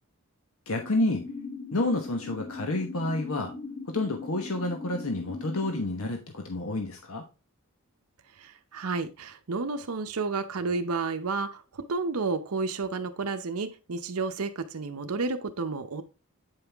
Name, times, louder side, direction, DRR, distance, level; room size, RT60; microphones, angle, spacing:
voice 1, 0.7-1.3 1.7-3.5 3.9-7.2, left 2 dB, 75° left, 3 dB, 1.1 m, -29 dB
sound 1, 0.8-5.8, left 4 dB, 50° left, 4.0 m, -40 dB
voice 2, 8.3-16.0, right 4 dB, 85° right, 8 dB, 0.7 m, -31 dB
8.8 x 5.6 x 3.4 m, 0.30 s
head